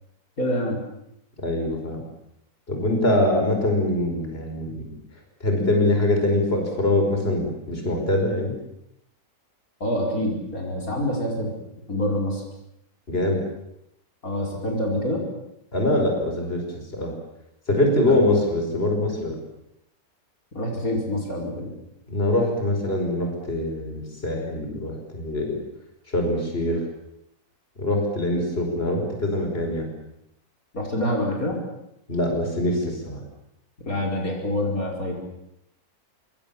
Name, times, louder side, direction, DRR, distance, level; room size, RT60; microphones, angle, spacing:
voice 1, 0.4-0.8 9.8-11.5 11.9-12.4 14.2-15.2 18.1-18.2 19.0-19.1 20.5-21.7 30.7-31.6 33.9-35.2, left 1 dB, 65° left, 0 dB, 5.5 m, -26 dB
voice 2, 1.4-2.0 2.7-4.9 5.4-8.5 13.1-13.4 15.7-16.6 16.9-17.1 17.7-19.4 22.1-25.6 26.1-26.8 27.8-29.9 32.1-33.2, left 1 dB, 40° left, 3 dB, 5.5 m, -23 dB
26.5 x 24.5 x 7.2 m, 0.81 s
omnidirectional pair, 1.6 m